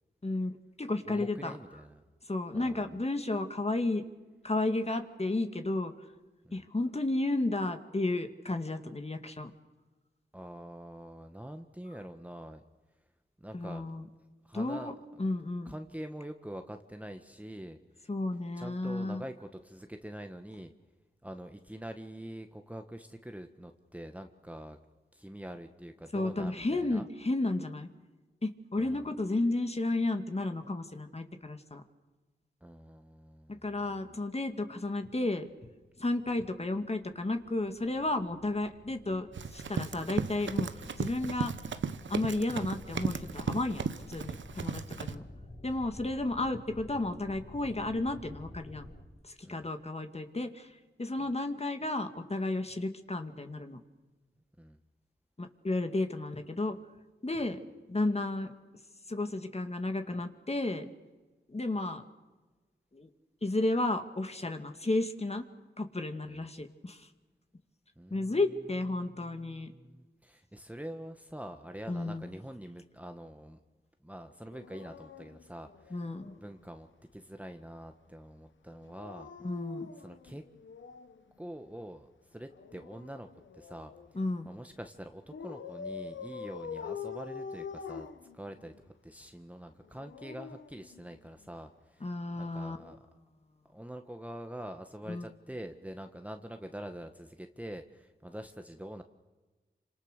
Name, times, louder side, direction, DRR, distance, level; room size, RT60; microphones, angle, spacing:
voice 1, 0.2-1.6 2.3-4.0 4.4-5.9 6.5-9.5 13.5-14.0 14.5-14.9 15.2-15.7 18.1-19.2 26.1-27.9 28.4-31.8 33.6-35.5 36.0-41.5 42.1-45.2 45.6-48.9 49.2-50.7 51.0-53.8 55.4-56.8 57.2-57.6 57.9-58.5 59.1-60.9 61.5-62.0 62.9-63.1 63.4-65.5 65.8-67.1 68.1-69.7 71.9-72.3 75.9-76.3 79.4-79.9 84.1-84.5 92.0-92.8 95.1-95.3, left 2 dB, 35° left, 7 dB, 2.3 m, -32 dB
voice 2, 1.0-2.0 2.5-2.9 6.4-6.7 10.3-12.6 13.4-13.9 14.4-15.3 15.6-18.1 18.5-20.7 21.2-24.8 25.1-27.1 28.8-29.1 32.6-33.8 44.5-45.4 46.0-46.1 49.4-49.7 51.2-51.3 54.6-54.8 66.2-66.4 68.0-68.5 68.9-73.6 74.0-76.1 76.4-76.9 77.1-79.3 80.0-80.4 81.4-83.3 83.5-83.9 84.4-88.1 88.3-88.7 89.0-93.1 93.6-99.0, right 1 dB, 5° right, 6 dB, 1.5 m, -45 dB
sound 1, 35.7-49.0, left 1 dB, 65° left, 6.7 m, -50 dB
Run, 39.3-45.1, right 6 dB, 85° right, 1.1 m, -36 dB
Dog, 74.5-76.4 78.8-81.2 82.5-84.2 85.3-88.9 89.8-91.5 92.7-93.0, left 5 dB, 90° left, 1.2 m, -45 dB
27.5 x 26.5 x 6.8 m, 1.2 s
cardioid pair, 55°, 19 cm